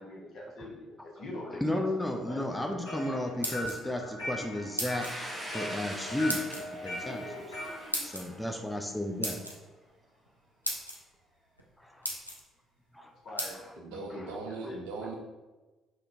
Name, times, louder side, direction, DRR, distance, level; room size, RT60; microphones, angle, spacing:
voice 1, 0.0-1.8 2.2-2.4 13.2-14.4 14.7-14.8, left 1 dB, 50° left, -2 dB, 0.8 m, -43 dB
voice 2, 1.5-5.1 5.5-7.6 8.0-9.4 11.8-12.1 12.9-13.1 13.5-13.7 14.1-14.3, left 1 dB, 5° left, 3 dB, 0.4 m, -34 dB
sound 1, 2.5-7.9, left 1 dB, 70° left, 1.0 m, -40 dB
sound 2, 3.2-4.1 4.8-5.2 6.3-6.6 7.9-8.2 9.2-9.6 10.3-10.4 10.6-11.0 11.6-11.7 12.0-12.4 13.4-13.5, equal, 90° left, 0.4 m, -34 dB
Domestic sounds home sounds, 5.0-9.6, right 1 dB, 15° right, 0.8 m, -43 dB
voice 3, 13.8-15.2, right 3 dB, 65° right, 1 dB, 0.5 m, -39 dB
3.6 x 2.2 x 3.4 m, 1.2 s
figure-of-eight pair, 50°, 0 cm